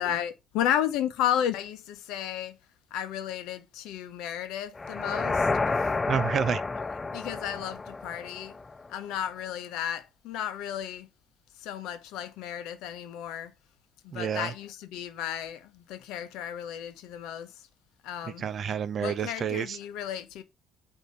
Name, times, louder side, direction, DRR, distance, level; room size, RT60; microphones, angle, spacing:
voice 1, 0.0-2.5 2.9-5.5 7.1-8.5 8.9-11.1 11.6-13.5 14.0-17.5 18.0-18.4 19.0-20.4, left 10 dB, 90° left, 0.7 m, -33 dB
sound 1, 4.8-8.9, left 3 dB, 25° left, 0.3 m, -30 dB
voice 2, 6.1-6.6 14.1-14.5 18.2-19.8, right 7 dB, 50° right, 0.5 m, -29 dB
8.3 x 2.8 x 4.1 m
cardioid pair, 100°, 0 cm